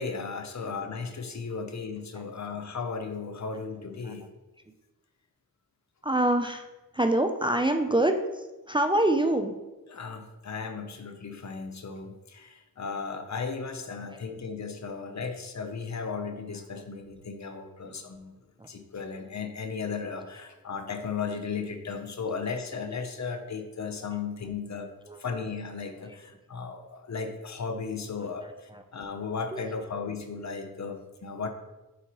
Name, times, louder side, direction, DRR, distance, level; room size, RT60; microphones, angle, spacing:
voice 1, 0.0-4.2 9.9-18.3 18.7-24.9 25.2-28.5 28.9-31.5, left 5 dB, 50° left, 6 dB, 0.8 m, -35 dB
voice 2, 6.0-6.7 6.9-9.5 14.1-14.2 16.8-16.9 17.8-18.0 18.6-18.7 25.1-25.2 26.0-26.2 28.4-28.8 29.5-29.8, right 1 dB, 15° right, 5 dB, 0.4 m, -26 dB
8.2 x 4.3 x 3.0 m, 1.1 s
cardioid pair, 75°, 35 cm